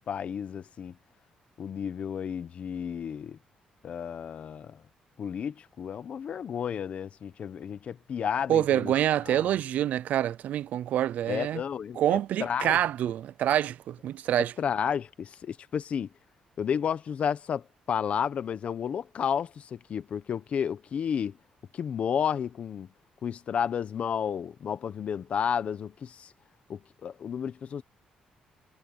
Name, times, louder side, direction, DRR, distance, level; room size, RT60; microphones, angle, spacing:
voice 1, 0.1-0.9 1.6-3.4 3.8-4.8 5.2-8.9 9.3-9.6 11.3-12.8 14.6-16.1 16.6-21.3 21.7-22.9 23.2-26.3 26.7-27.8, left 8 dB, 50° left, 1.1 m, -32 dB
voice 2, 8.5-11.6 12.0-14.5, right 11 dB, 70° right, 0.5 m, -26 dB
cardioid pair, 120°, 3 cm